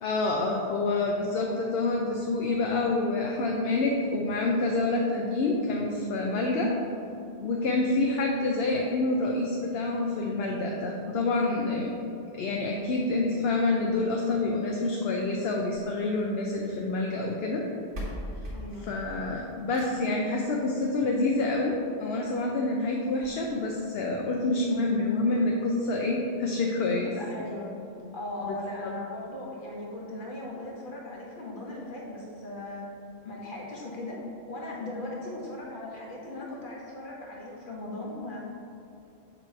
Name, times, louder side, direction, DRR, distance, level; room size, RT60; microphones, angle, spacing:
voice 1, 0.0-6.7 7.4-11.9 12.3-17.6 18.9-21.7 22.0-27.1 28.5-28.6 28.8-28.9, left 2 dB, 65° left, 0 dB, 0.8 m, -27 dB
sound 1, 15.6-16.8 17.6-17.7 17.9-20.2 21.6-21.7 22.2-22.3 22.5-22.6 23.2-23.3, equal, 85° right, 1.7 m, -40 dB
voice 2, 18.5-18.9 27.0-27.7 28.1-32.9 33.2-34.2 34.5-38.4, left 2 dB, 50° left, -3 dB, 1.3 m, -38 dB
6.7 x 3.0 x 5.7 m, 2.7 s
omnidirectional pair, 1.1 m